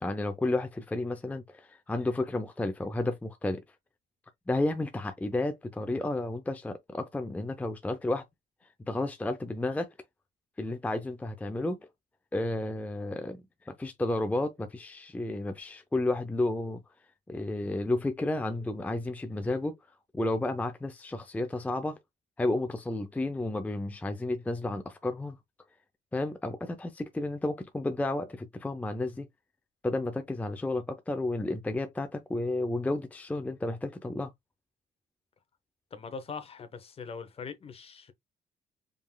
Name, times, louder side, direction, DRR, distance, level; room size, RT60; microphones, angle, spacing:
voice 1, 0.0-3.6 4.5-8.2 8.9-9.9 10.6-11.9 12.3-16.8 17.3-19.7 20.1-22.0 22.4-25.4 26.1-29.3 29.8-34.3, left 2 dB, 10° left, 0.5 m, -32 dB
voice 2, 35.9-38.1, left 5 dB, 35° left, 0.9 m, -41 dB
5.2 x 3.6 x 2.2 m
cardioid pair, 110°, 17 cm